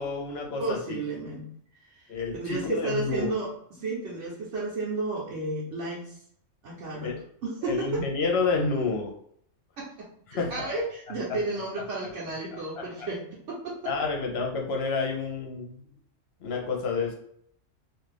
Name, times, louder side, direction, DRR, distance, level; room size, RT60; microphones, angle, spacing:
voice 1, 0.0-0.8 2.1-3.3 7.0-7.2 7.6-9.1 10.3-10.7 13.8-15.8 16.4-17.1, left 4 dB, 60° left, 0 dB, 0.8 m, -29 dB
voice 2, 0.6-1.5 1.8-2.1 2.4-6.2 6.6-7.1 7.4-8.0 9.8-13.7, right 3 dB, 70° right, -4 dB, 1.0 m, -32 dB
2.5 x 2.4 x 3.3 m, 0.67 s
omnidirectional pair, 1.3 m